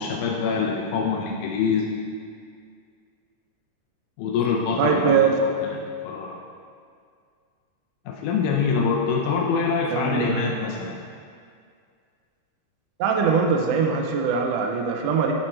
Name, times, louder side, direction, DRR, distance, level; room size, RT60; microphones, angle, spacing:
voice 1, 0.0-2.0 4.2-5.2 5.7-6.4 8.1-11.0, left 5 dB, 85° left, -1 dB, 2.1 m, -25 dB
voice 2, 4.8-5.3 9.9-10.6 13.0-15.3, right 6 dB, 90° right, 2 dB, 1.4 m, -22 dB
11.5 x 4.4 x 3.2 m, 2.2 s
omnidirectional pair, 3.5 m